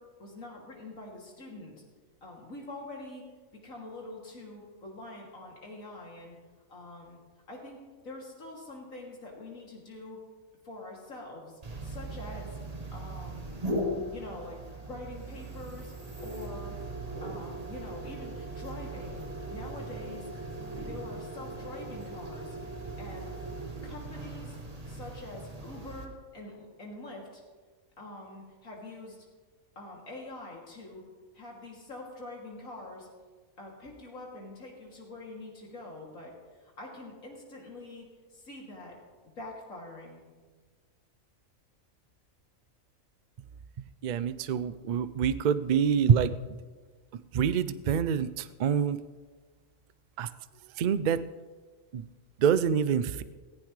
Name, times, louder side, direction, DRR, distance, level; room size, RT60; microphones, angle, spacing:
voice 1, 0.0-1.8 2.2-3.2 3.5-6.4 6.7-7.2 7.5-10.2 10.6-12.6 12.9-13.7 14.1-15.9 16.2-16.8 17.2-19.2 19.5-20.3 20.8-22.6 23.0-23.3 23.8-24.6 24.9-27.4 28.0-29.2 29.7-31.0 31.3-33.1 33.6-39.0 39.4-40.2, left 2 dB, 75° left, -2 dB, 3.2 m, -45 dB
sound 1, 11.6-26.1, right 1 dB, 30° right, 1.4 m, -39 dB
voice 2, 44.0-46.3 47.3-49.0 50.2-50.3 50.8-51.2 51.9-52.0 52.4-53.2, right 7 dB, 70° right, 14 dB, 0.4 m, -26 dB
17.5 x 15.5 x 3.3 m, 1.4 s
omnidirectional pair, 1.4 m